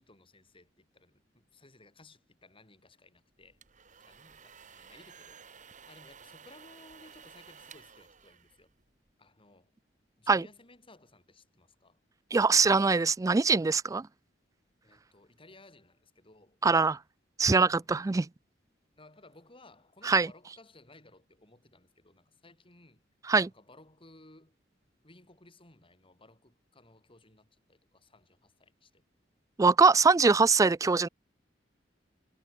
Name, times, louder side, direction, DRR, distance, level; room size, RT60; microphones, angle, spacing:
voice 1, 0.0-3.6 4.0-8.7 9.2-9.7 10.2-12.0 14.8-16.6 17.7-17.9 19.0-23.1 23.4-24.6 25.0-29.0, left 2 dB, 30° left, 7.2 m, -58 dB
sound 1, 3.4-9.1, right 6 dB, 45° right, 2.0 m, -54 dB
voice 2, 12.3-14.1 16.6-17.0 17.4-18.3 20.0-20.3 23.3-23.5 29.6-31.1, right 4 dB, 20° right, 0.3 m, -23 dB
head